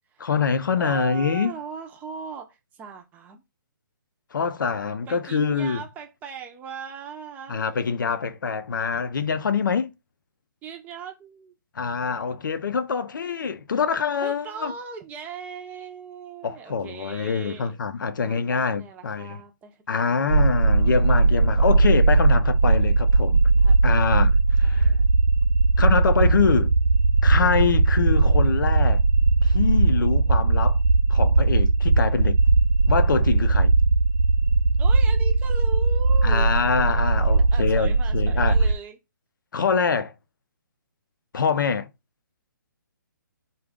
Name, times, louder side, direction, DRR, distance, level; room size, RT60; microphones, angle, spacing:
voice 1, 0.2-1.6 4.3-5.8 7.5-9.9 11.7-14.7 16.4-19.4 19.9-23.4 23.8-24.9 25.8-26.7 27.2-29.0 29.4-30.8 31.1-32.4 32.9-33.7 36.2-38.5 39.5-40.1 41.3-41.9, left 5 dB, 70° left, 0.5 m, -25 dB
voice 2, 0.8-3.4 5.1-7.6 10.6-11.5 14.2-17.8 18.2-20.6 23.6-24.2 24.6-25.1 34.8-36.5 37.5-39.0, right 6 dB, 15° right, 0.6 m, -39 dB
sound 1, 20.3-38.7, right 3 dB, 75° right, 0.4 m, -19 dB
3.7 x 2.4 x 3.5 m
hypercardioid pair, 140°, 11 cm